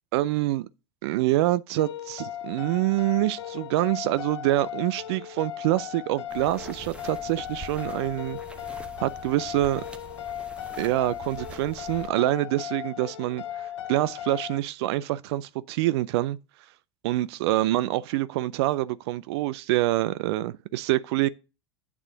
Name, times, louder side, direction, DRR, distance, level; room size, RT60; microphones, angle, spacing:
voice 1, 0.1-0.7 1.0-8.4 9.0-9.8 10.8-16.4 17.0-21.3, right 16 dB, 65° right, 0.4 m, -26 dB
sound 1, 1.8-14.6, left 11 dB, 80° left, 0.5 m, -37 dB
sound 2, 6.3-12.1, right 3 dB, 5° right, 1.0 m, -45 dB
8.4 x 3.6 x 6.7 m
hypercardioid pair, 85°, 15 cm